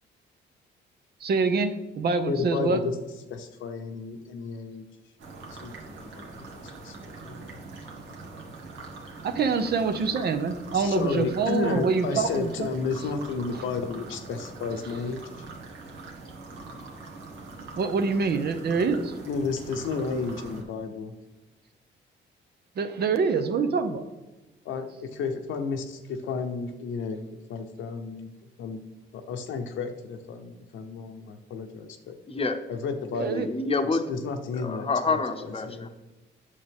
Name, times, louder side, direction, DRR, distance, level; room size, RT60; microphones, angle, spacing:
voice 1, 1.2-2.8 9.2-12.7 17.6-19.1 22.8-24.1 33.1-33.5, right 4 dB, 55° right, 9 dB, 0.8 m, -25 dB
voice 2, 2.3-2.9 3.3-4.8 5.6-6.4 6.8-7.5 10.7-15.2 19.3-21.1 24.6-28.3 28.6-28.8 29.1-32.1 32.7-33.6 34.1-34.9 35.6-35.9, left 5 dB, 80° left, 6 dB, 0.9 m, -32 dB
sound 1, 5.2-20.6, right 3 dB, 75° right, 1.7 m, -43 dB
voice 3, 32.3-32.6 33.3-34.0 34.5-35.9, left 3 dB, 30° left, 8 dB, 0.8 m, -27 dB
8.5 x 6.5 x 3.6 m, 1.1 s
cardioid pair, 90°, 20 cm